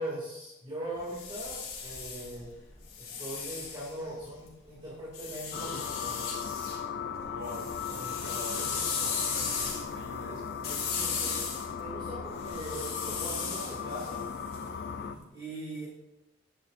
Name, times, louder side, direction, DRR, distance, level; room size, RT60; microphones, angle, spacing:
voice 1, 0.0-2.5 3.0-6.2 8.3-8.5 11.2-11.4 11.8-14.3 15.3-15.9, right 1 dB, 25° right, -7 dB, 2.4 m, -40 dB
sound 1, 0.9-4.5 5.1-6.8 7.1-15.0, left 6 dB, 75° left, 2.6 m, -37 dB
sound 2, 5.5-15.2, left 6 dB, 55° left, 0.4 m, -37 dB
voice 2, 7.2-11.1 14.8-15.2, equal, 80° right, -2 dB, 3.1 m, -44 dB
9.6 x 8.7 x 2.5 m, 0.93 s
head